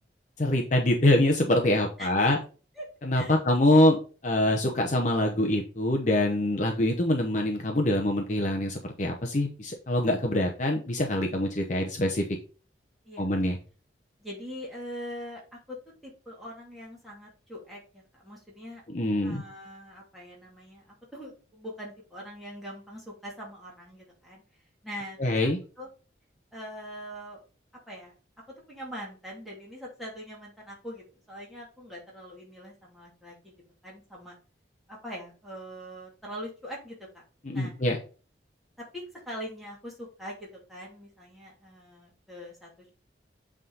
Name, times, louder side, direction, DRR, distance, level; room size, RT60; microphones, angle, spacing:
voice 1, 0.4-2.4 3.0-12.2 13.2-13.6 18.9-19.4 25.2-25.6 37.4-38.0, left 1 dB, 40° left, 1 dB, 0.9 m, -24 dB
voice 2, 2.0-2.3 2.8-2.9 3.1-3.4 13.0-13.5 14.2-15.8 16.0-18.8 19.2-24.4 24.8-25.9 26.5-27.4 27.9-28.1 28.5-33.5 33.8-34.4 34.9-37.2 37.5-37.7 38.8-42.9, equal, ahead, -5 dB, 2.6 m, -42 dB
8.2 x 3.7 x 4.0 m, 0.36 s
head